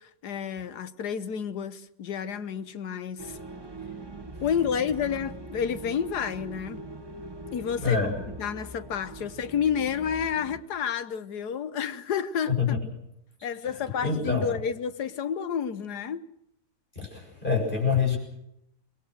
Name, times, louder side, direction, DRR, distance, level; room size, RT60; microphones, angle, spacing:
voice 1, 0.0-3.4 4.4-6.8 7.5-12.8 13.4-16.2, left 7 dB, 75° left, 1.6 m, -30 dB
sound 1, 3.2-10.6, right 2 dB, 15° right, 1.3 m, -42 dB
voice 2, 7.8-8.1 12.5-12.8 14.0-14.5 17.0-18.2, left 5 dB, 30° left, 7.2 m, -26 dB
24.0 x 20.5 x 6.4 m
omnidirectional pair, 1.8 m